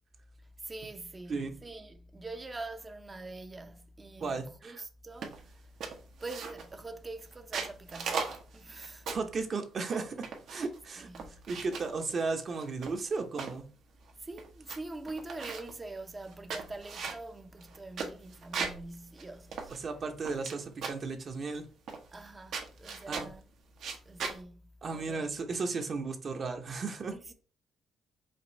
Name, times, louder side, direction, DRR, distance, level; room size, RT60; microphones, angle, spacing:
voice 1, 0.6-5.6 6.2-9.1 11.0-11.4 14.2-19.7 22.1-23.4 24.1-24.6 24.9-25.3 27.1-27.3, right 2 dB, 25° right, 0.6 m, -44 dB
voice 2, 4.2-4.8 9.1-10.1 10.5-11.1 11.5-13.7 19.7-21.7 23.1-23.3 24.8-27.2, right 4 dB, 50° right, 0.9 m, -35 dB
sound 1, 5.2-5.5 5.8-6.8 7.3-9.4 9.9-10.8 11.1-11.9 12.6-13.6 14.1-14.2 14.4-14.8 15.1-15.8 16.3-18.9 19.2-19.3 19.5-20.5 20.8-21.1 21.9-22.3 22.5-23.4 23.8-24.4, right 5 dB, 70° right, 1.0 m, -38 dB
5.1 x 2.5 x 4.0 m
cardioid pair, 90°, 0 cm